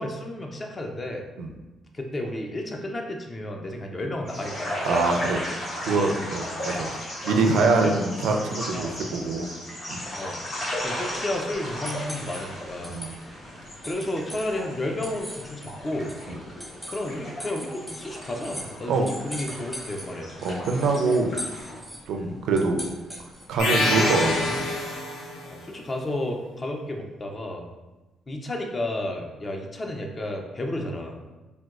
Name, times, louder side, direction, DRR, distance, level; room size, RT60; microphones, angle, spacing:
voice 1, 0.0-1.2 1.9-4.7 5.9-6.3 7.6-8.0 8.7-9.0 10.2-10.4 10.8-13.0 13.9-16.1 16.9-20.3 22.2-22.4 25.5-27.7 28.3-31.2, left 1 dB, 30° left, 2 dB, 0.5 m, -32 dB
sound 1, 4.2-21.8, left 1 dB, 50° left, 1.0 m, -35 dB
voice 2, 4.8-5.4 5.8-6.9 7.2-9.5 9.9-10.0 12.9-13.1 18.9-19.1 20.4-21.3 22.1-22.8 23.5-24.8, right 3 dB, 85° right, 3 dB, 0.4 m, -24 dB
sound 2, 10.8-23.6, equal, 10° left, 0.8 m, -42 dB
sound 3, 23.6-25.5, left 2 dB, 75° left, 0.9 m, -25 dB
4.2 x 2.2 x 2.3 m, 1.1 s
cardioid pair, 90°, 0 cm